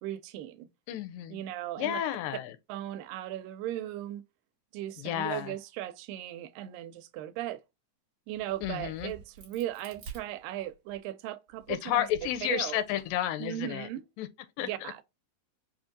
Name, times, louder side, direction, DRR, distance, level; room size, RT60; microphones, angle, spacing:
voice 1, 0.0-0.7 1.3-2.0 2.7-4.2 4.7-7.6 8.3-12.1 12.5-12.8 13.4-14.0 14.6-15.0, right 13 dB, 85° right, 2.2 m, -37 dB
voice 2, 0.9-1.4 1.8-2.6 5.0-5.5 8.6-9.1 11.7-13.9 14.2-14.3 14.6-14.9, left 12 dB, 80° left, 2.1 m, -31 dB
Crack, 8.3-11.0 11.5-13.2, right 7 dB, 45° right, 1.8 m, -49 dB
5.6 x 2.6 x 2.5 m
omnidirectional pair, 4.0 m